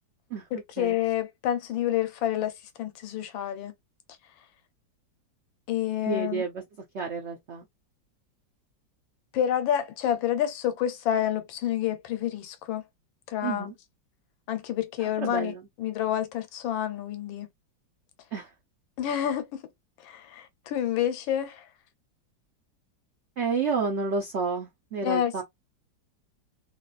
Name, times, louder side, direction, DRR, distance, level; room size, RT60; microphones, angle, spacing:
voice 1, 0.5-2.5 2.8-3.7 5.7-6.4 9.3-12.8 13.3-13.7 14.5-17.5 19.0-19.6 20.0-21.6 25.0-25.4, left 10 dB, 90° left, 1.5 m, -28 dB
voice 2, 6.0-6.6 6.9-7.7 13.4-13.7 15.0-15.6 18.3-18.5 23.4-25.4, right 5 dB, 70° right, 0.6 m, -30 dB
3.0 x 2.9 x 2.4 m
omnidirectional pair, 2.1 m